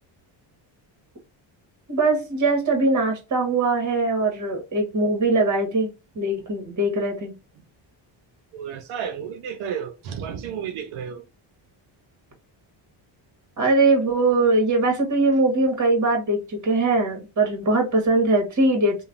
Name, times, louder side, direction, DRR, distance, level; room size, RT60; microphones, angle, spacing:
voice 1, 1.9-7.3 13.6-19.0, right 2 dB, 35° right, 1.5 m, -21 dB
voice 2, 8.5-11.2, right 8 dB, 90° right, 0.8 m, -32 dB
3.1 x 2.3 x 2.5 m
cardioid pair, 100°, 49 cm